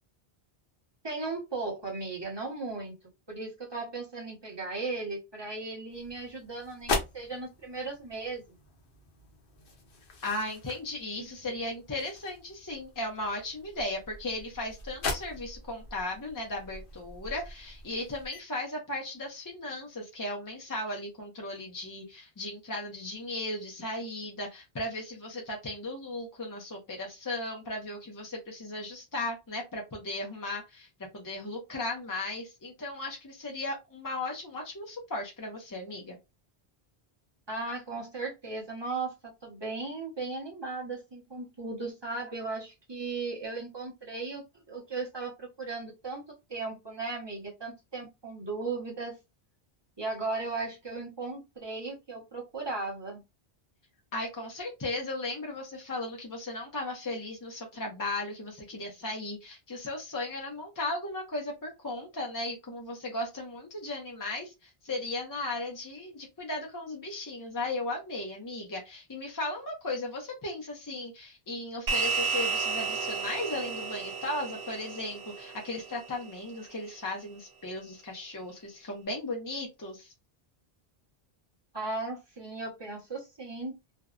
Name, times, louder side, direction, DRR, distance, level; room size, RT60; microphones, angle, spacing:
voice 1, 1.0-2.9 3.3-8.4 11.2-11.3 37.5-49.1 50.0-53.2 81.7-83.8, right 3 dB, 25° right, -2 dB, 0.9 m, -36 dB
sound 1, 5.9-18.4, left 3 dB, 60° left, 0.8 m, -40 dB
voice 2, 10.2-30.9 31.1-36.2 54.1-80.1, left 2 dB, 30° left, 0 dB, 0.4 m, -36 dB
sound 2, 71.9-76.5, right 5 dB, 75° right, 1.0 m, -33 dB
2.5 x 2.0 x 2.3 m, 0.23 s
omnidirectional pair, 1.1 m